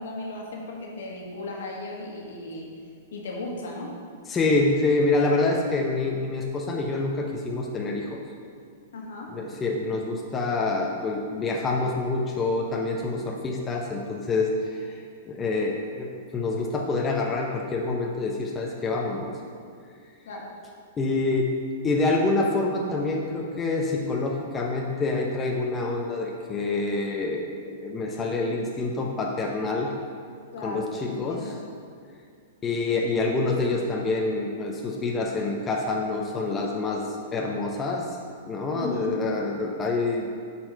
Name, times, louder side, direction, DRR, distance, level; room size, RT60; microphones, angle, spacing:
voice 1, 0.0-2.7 3.1-3.9 8.9-9.3 20.3-20.5 30.5-31.6 38.7-39.1, left 2 dB, 70° left, -2 dB, 1.7 m, -36 dB
voice 2, 4.3-8.2 9.3-19.3 21.0-21.5 21.8-29.9 30.6-31.5 32.6-37.0 37.3-38.1 38.5-40.3, left 3 dB, 20° left, 0 dB, 0.9 m, -26 dB
8.7 x 4.3 x 5.4 m, 2.2 s
hypercardioid pair, 110°, 0 cm